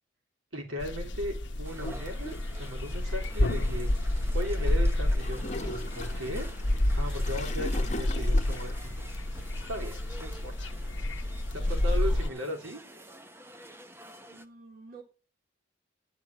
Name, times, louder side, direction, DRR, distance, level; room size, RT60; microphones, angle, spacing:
voice 1, 0.5-3.9 4.3-6.5 7.0-9.0 9.7-10.8 11.8-12.8, equal, 80° right, 3.9 m, -37 dB
sound 1, 0.8-12.3, left 1 dB, 60° left, 1.0 m, -29 dB
sound 2, 1.6-14.5, right 1 dB, 10° right, 0.8 m, -49 dB
Gurgling / Toilet flush, 5.2-8.9, left 1 dB, 35° left, 1.2 m, -40 dB
voice 2, 11.6-12.1 14.0-15.0, right 2 dB, 45° right, 3.2 m, -52 dB
11.0 x 5.4 x 8.0 m
head